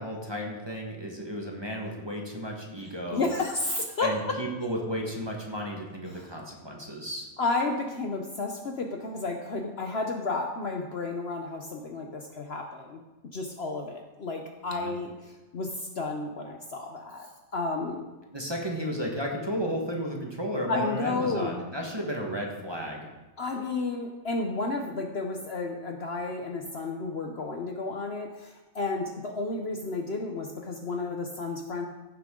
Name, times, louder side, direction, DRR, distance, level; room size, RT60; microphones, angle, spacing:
voice 1, 0.0-3.3 4.0-7.3 14.7-14.9 18.3-23.1, equal, 20° right, 0 dB, 1.5 m, -33 dB
voice 2, 3.1-4.4 6.1-6.3 7.4-13.0 13.3-15.7 16.0-18.0 20.7-21.5 23.4-31.9, left 3 dB, 50° left, 3 dB, 1.0 m, -32 dB
15.5 x 7.3 x 3.8 m, 1.1 s
omnidirectional pair, 1.5 m